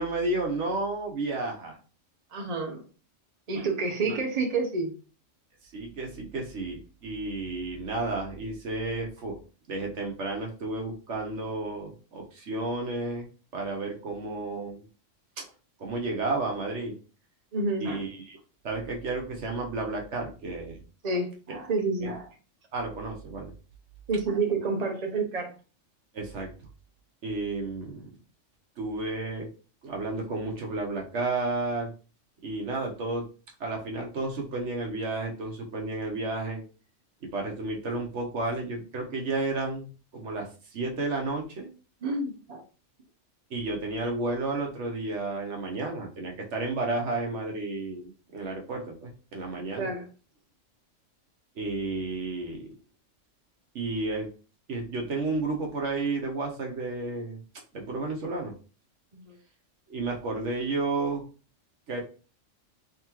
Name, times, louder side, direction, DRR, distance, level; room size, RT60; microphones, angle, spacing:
voice 1, 0.0-1.8 4.0-4.1 5.7-9.4 9.7-13.3 13.5-14.8 15.4-15.5 15.8-17.0 17.8-18.4 18.6-20.8 21.5-21.6 22.0-22.1 22.7-23.5 26.1-26.5 27.2-28.1 28.8-29.5 29.8-31.9 32.4-33.3 33.6-36.6 37.2-41.7 43.5-49.9 51.6-52.7 53.7-54.3 54.7-57.4 57.7-58.5 59.9-61.2 61.9-62.0, right 2 dB, 70° right, 1 dB, 1.2 m, -32 dB
voice 2, 2.3-2.8 3.5-4.9 17.5-18.0 21.0-22.3 24.1-25.5 42.0-42.6 49.8-50.0 59.1-59.4, right 3 dB, 35° right, 2 dB, 0.8 m, -29 dB
3.7 x 3.5 x 3.0 m, 0.36 s
omnidirectional pair, 1.3 m